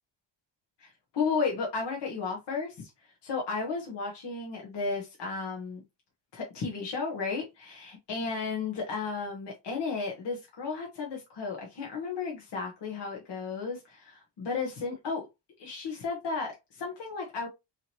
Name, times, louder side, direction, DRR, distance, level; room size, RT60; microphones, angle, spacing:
voice 1, 0.8-5.8 6.3-15.3 15.6-17.5, left 4 dB, 60° left, 1.3 m, -34 dB
4.8 x 3.0 x 2.9 m
wide cardioid pair, 180°, 46 cm